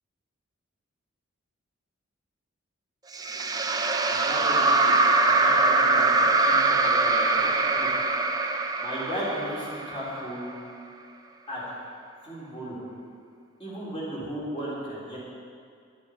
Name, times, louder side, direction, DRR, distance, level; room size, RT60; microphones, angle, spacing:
sound 1, 3.1-10.4, right 3 dB, 20° right, 0.6 m, -23 dB
voice 1, 4.0-7.9 8.8-10.5 11.5-11.6 12.2-12.8 13.6-15.2, equal, 25° left, -8 dB, 3.8 m, -35 dB
11.5 x 9.5 x 7.1 m, 2.2 s
head